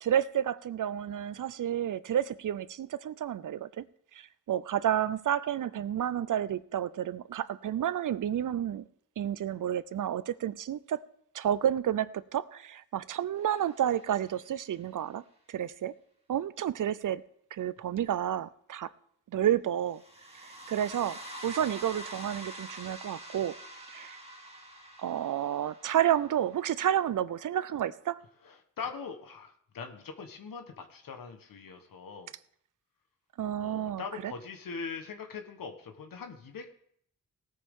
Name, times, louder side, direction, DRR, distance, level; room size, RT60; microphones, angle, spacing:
voice 1, 0.0-3.9 4.1-8.8 9.2-11.0 11.3-15.2 15.5-15.9 16.3-17.2 17.5-18.9 19.3-20.0 20.4-23.5 23.9-24.2 25.0-28.2 33.4-34.3, right 10 dB, 65° right, 17 dB, 0.6 m, -30 dB
sound 1, 13.6-14.6 19.9-26.6, right 1 dB, 15° right, 2.4 m, -46 dB
voice 2, 28.4-32.3 33.6-36.7, left 5 dB, 80° left, 6 dB, 1.3 m, -42 dB
18.5 x 9.2 x 3.7 m, 0.67 s
cardioid pair, 80°, 34 cm